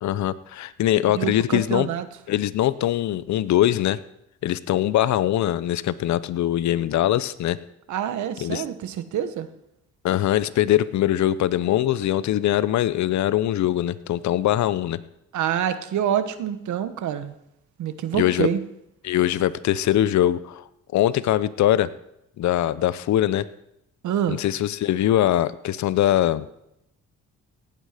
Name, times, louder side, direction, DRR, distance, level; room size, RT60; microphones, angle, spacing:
voice 1, 0.0-1.9 2.3-4.0 4.4-7.6 8.4-8.6 10.0-15.0 18.2-18.5 19.0-20.6 20.9-21.9 22.4-23.5 24.3-26.5, left 12 dB, 70° left, 16 dB, 0.7 m, -22 dB
voice 2, 1.1-2.1 7.9-9.5 15.3-17.3 17.8-18.6 24.0-24.4, right 9 dB, 75° right, 11 dB, 1.2 m, -26 dB
17.5 x 9.0 x 5.0 m, 0.83 s
cardioid pair, 90°, 30 cm